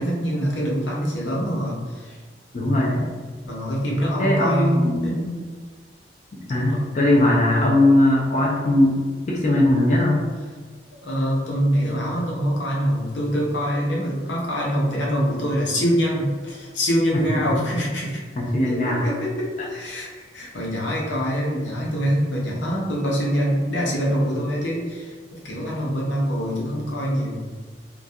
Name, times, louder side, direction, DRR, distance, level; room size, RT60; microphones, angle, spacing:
voice 1, 0.0-2.2 3.4-5.2 6.6-6.8 11.0-18.2 18.7-27.6, equal, 80° left, -4 dB, 0.7 m, -24 dB
voice 2, 2.5-3.1 4.2-5.4 6.3-9.0 9.3-10.2 17.1-17.2 17.5-17.6 18.4-19.0, left 1 dB, 40° left, -5 dB, 0.4 m, -19 dB
2.3 x 2.2 x 2.6 m, 1.5 s
head